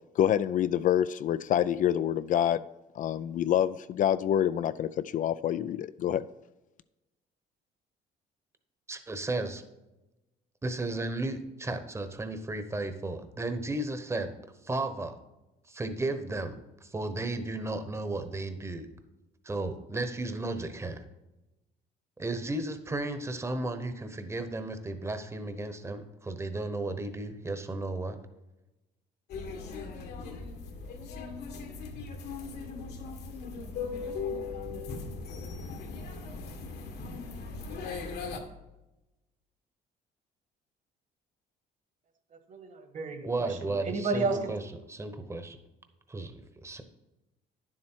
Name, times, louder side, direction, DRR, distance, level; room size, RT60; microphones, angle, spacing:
voice 1, 0.2-2.6 3.0-6.2, left 10 dB, 50° left, 14 dB, 0.4 m, -27 dB
voice 2, 8.9-9.6 10.6-14.3 14.6-15.1 15.7-18.9 19.4-21.0 22.2-28.2 43.2-44.6 44.9-45.6 46.1-46.3 46.6-46.8, right 2 dB, 15° right, 9 dB, 1.0 m, -34 dB
sound 1, 29.3-38.4, left 4 dB, 75° left, 1.7 m, -38 dB
voice 3, 42.5-44.5, right 3 dB, 50° right, 7 dB, 1.6 m, -32 dB
9.8 x 7.5 x 4.5 m, 0.98 s
cardioid pair, 110°, 17 cm